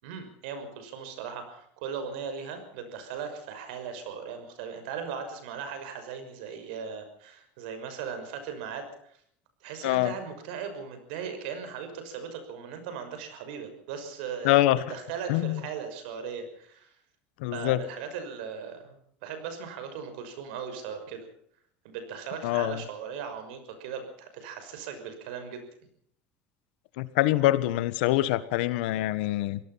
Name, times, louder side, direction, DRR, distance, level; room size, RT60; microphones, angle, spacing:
voice 1, 0.0-9.2 9.6-14.6 14.9-16.9 17.5-21.3 21.8-25.6, right 6 dB, 80° right, 8 dB, 6.0 m, -38 dB
voice 2, 9.8-10.1 14.4-14.8 15.3-15.6 17.4-17.8 22.4-22.8 27.0-29.6, left 16 dB, 80° left, 15 dB, 1.4 m, -24 dB
25.0 x 17.5 x 5.8 m, 0.64 s
cardioid pair, 160°, 5 cm